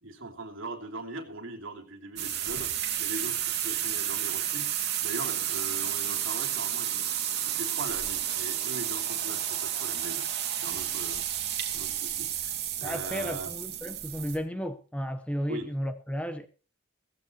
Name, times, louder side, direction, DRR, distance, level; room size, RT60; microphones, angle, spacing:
voice 1, 0.0-2.7 3.0-7.1 7.4-10.2 10.6-11.3 11.7-13.5 15.5-15.7, right 2 dB, 70° right, 3.2 m, -40 dB
sound 1, 2.2-14.4, right 10 dB, 50° right, 2.7 m, -31 dB
voice 2, 12.8-16.5, equal, 5° left, 0.9 m, -33 dB
17.0 x 15.5 x 3.0 m
head